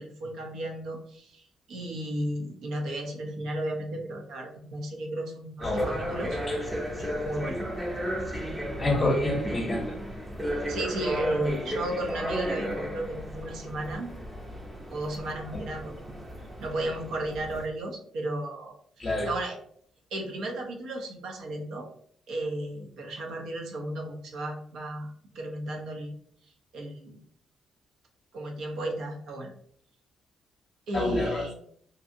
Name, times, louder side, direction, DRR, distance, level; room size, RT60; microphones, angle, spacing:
voice 1, 0.0-1.4 1.7-6.4 7.0-7.6 10.6-14.2 14.9-15.9 16.6-19.6 20.1-21.9 22.3-26.1 26.7-27.2 28.3-29.5 30.9-31.5, right 1 dB, 80° right, 1 dB, 0.6 m, -34 dB
sound 1, 5.6-17.7, equal, 10° right, 0.6 m, -34 dB
voice 2, 8.8-9.8 15.5-15.6 19.0-19.3 30.9-31.5, left 2 dB, 30° left, 1 dB, 0.7 m, -27 dB
2.6 x 2.6 x 2.5 m, 0.64 s
cardioid pair, 90°, 0 cm